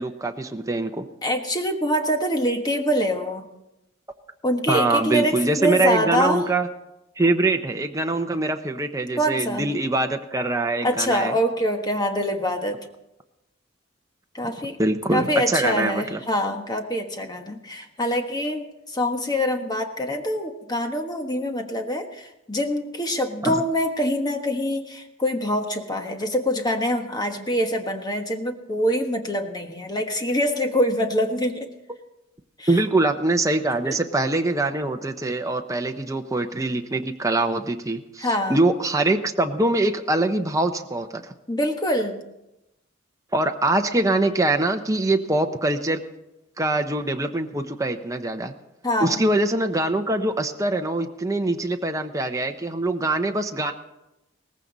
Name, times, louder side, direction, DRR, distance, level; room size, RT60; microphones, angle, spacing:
voice 1, 0.0-1.1 4.7-6.7 7.2-11.3 14.8-16.2 23.4-23.6 32.7-41.3 43.3-46.0 46.6-48.5 49.0-53.7, right 2 dB, 15° right, 4 dB, 0.9 m, -23 dB
voice 2, 1.2-3.5 4.4-6.4 9.2-9.7 10.8-12.8 14.3-14.8 15.1-31.7 32.6-32.8 33.8-34.0 38.2-38.6 41.5-42.2 48.8-49.2, equal, 20° left, 4 dB, 1.4 m, -25 dB
18.5 x 15.0 x 4.1 m, 0.91 s
head